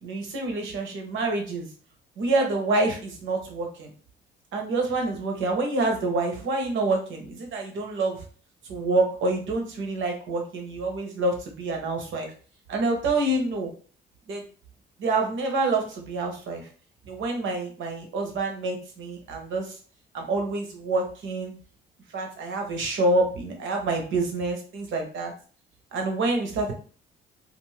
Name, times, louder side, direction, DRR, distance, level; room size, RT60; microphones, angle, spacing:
voice 1, 0.0-1.7 2.2-3.9 4.5-8.2 8.7-12.3 12.7-13.7 14.3-14.4 15.0-16.7 17.0-19.8 20.1-21.5 22.1-25.3 25.9-26.7, right 2 dB, 75° right, 2 dB, 0.9 m, -27 dB
2.5 x 2.5 x 3.1 m, 0.41 s
cardioid pair, 90°, 20 cm